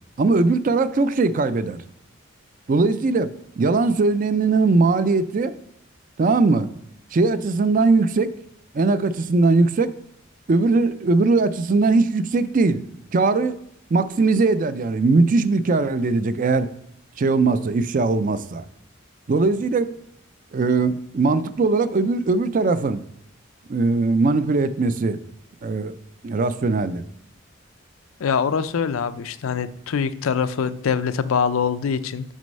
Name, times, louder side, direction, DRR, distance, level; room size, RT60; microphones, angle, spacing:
voice 1, 0.2-1.8 2.7-5.5 6.2-6.7 7.1-8.3 8.7-9.9 10.5-12.8 13.1-13.6 13.9-16.7 17.2-18.6 19.3-19.9 20.5-23.0 23.7-25.2 25.6-26.0 26.2-27.0, right 3 dB, 40° right, 13 dB, 0.4 m, -20 dB
voice 2, 28.2-32.2, left 6 dB, 85° left, 13 dB, 0.5 m, -24 dB
6.2 x 5.3 x 5.3 m, 0.77 s
head